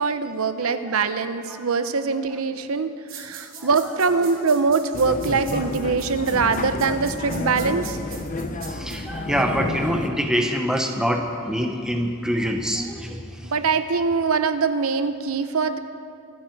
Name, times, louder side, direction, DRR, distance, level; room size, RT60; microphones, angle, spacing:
voice 1, 0.0-8.0 13.4-15.8, right 4 dB, 85° right, 10 dB, 0.8 m, -23 dB
sound 1, 3.1-9.0, right 7 dB, 65° right, 2.7 m, -41 dB
sound 2, 4.9-10.1, left 2 dB, 40° left, 0.8 m, -30 dB
voice 2, 8.7-13.5, equal, 5° right, 3 dB, 1.1 m, -25 dB
25.0 x 9.4 x 4.7 m, 2.5 s
head